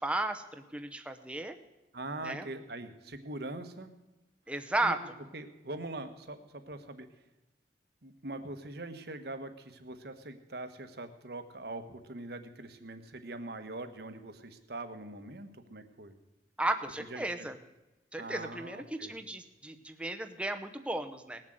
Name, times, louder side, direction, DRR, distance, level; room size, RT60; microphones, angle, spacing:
voice 1, 0.0-1.6 2.2-2.5 4.5-5.0 16.6-17.6 18.1-21.4, right 2 dB, 5° right, 7 dB, 0.8 m, -34 dB
voice 2, 1.9-3.9 4.8-5.0 5.3-7.1 8.0-16.2 17.1-17.5 18.2-19.2, right 2 dB, 60° right, 8 dB, 1.3 m, -42 dB
19.0 x 7.6 x 7.8 m, 1.0 s
head